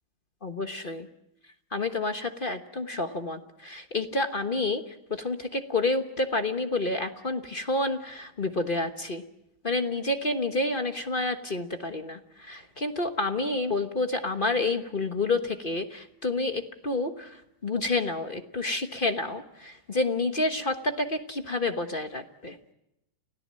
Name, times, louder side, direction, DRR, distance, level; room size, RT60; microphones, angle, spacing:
voice 1, 0.4-1.1 1.7-4.8 5.1-9.2 9.6-17.4 17.6-22.5, left 2 dB, 30° left, 7 dB, 1.1 m, -29 dB
30.0 x 17.0 x 7.6 m, 0.85 s
omnidirectional pair, 2.3 m